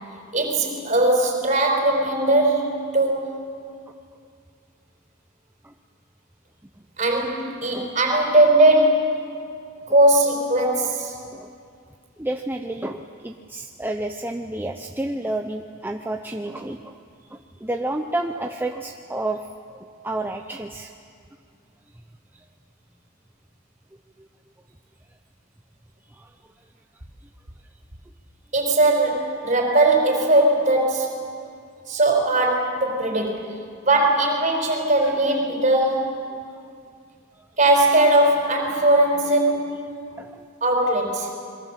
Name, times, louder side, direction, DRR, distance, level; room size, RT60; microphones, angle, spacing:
voice 1, 0.3-3.3 7.0-9.2 9.9-11.2 28.5-31.1 31.9-33.6 33.8-36.2 37.6-39.7 40.6-41.3, right 1 dB, 35° right, 2 dB, 4.8 m, -19 dB
voice 2, 12.2-17.0 17.3-19.5 19.7-20.9 24.2-24.3 26.1-26.3 35.0-35.1 36.5-36.6 37.4-37.5 40.1-40.4, right 1 dB, 10° right, 4 dB, 0.7 m, -30 dB
27.5 x 22.5 x 7.5 m, 2.3 s
head